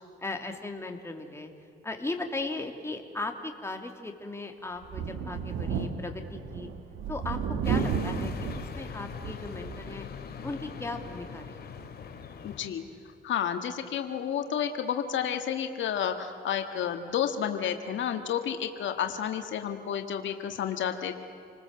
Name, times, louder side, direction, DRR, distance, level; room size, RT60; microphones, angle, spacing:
voice 1, 0.2-1.5 1.8-6.7 7.1-10.1 10.4-11.7, left 2 dB, 15° left, 3 dB, 2.9 m, -37 dB
Thunder, 4.8-9.9 10.4-10.5 11.8-11.9, right 6 dB, 80° right, 1.8 m, -33 dB
sound 1, 7.6-12.7, left 6 dB, 55° left, 2.6 m, -41 dB
voice 2, 12.4-12.8 13.2-21.1, left 9 dB, 70° left, 6 dB, 1.8 m, -31 dB
28.5 x 20.0 x 7.8 m, 2.6 s
cardioid pair, 90°, 20 cm